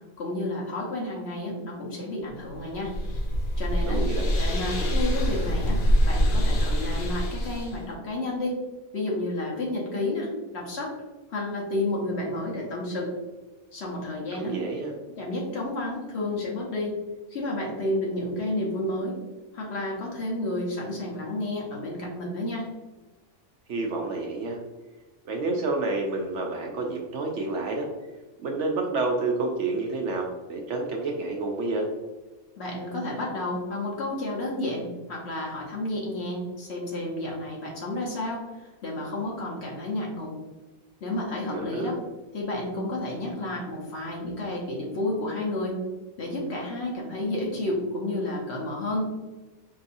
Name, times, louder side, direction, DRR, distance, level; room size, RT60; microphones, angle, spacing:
voice 1, 0.2-3.0 3.6-4.1 4.4-8.6 8.9-10.9 11.3-13.2 13.7-14.6 15.1-17.0 17.3-19.2 19.5-22.7 32.6-40.4 41.0-42.0 42.3-45.8 46.2-49.1, left 1 dB, 55° left, -2 dB, 1.0 m, -31 dB
sound 1, 2.5-7.8, equal, 85° left, 1.2 m, -25 dB
voice 2, 3.9-4.4 14.3-14.9 23.7-24.6 25.3-27.9 28.4-31.9 41.5-42.0, right 3 dB, 65° right, 1 dB, 0.8 m, -29 dB
4.6 x 2.7 x 2.5 m, 1.2 s
omnidirectional pair, 1.5 m